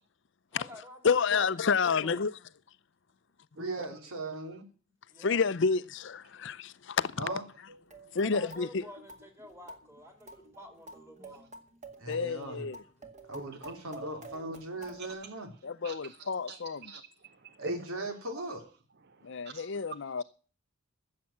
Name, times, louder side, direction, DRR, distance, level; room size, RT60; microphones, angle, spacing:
voice 1, 0.5-1.4 1.8-2.2 5.1-5.4 8.2-11.5, left 1 dB, 10° right, 2.8 m, -49 dB
voice 2, 1.0-2.3 5.2-7.2 8.1-8.9 12.1-12.8 15.6-16.8 19.2-20.2, left 5 dB, 55° left, 0.5 m, -29 dB
voice 3, 3.6-4.6 7.2-7.4 12.0-12.7 13.3-15.5 17.6-18.6, right 1 dB, 80° right, 3.4 m, -39 dB
sound 1, 7.7-15.1, right 1 dB, 35° right, 1.9 m, -50 dB
voice 4, 15.0-15.3 15.8-18.1 18.4-18.5 19.1-19.7 20.2-20.3, right 3 dB, 50° right, 0.6 m, -43 dB
14.0 x 7.5 x 7.4 m
head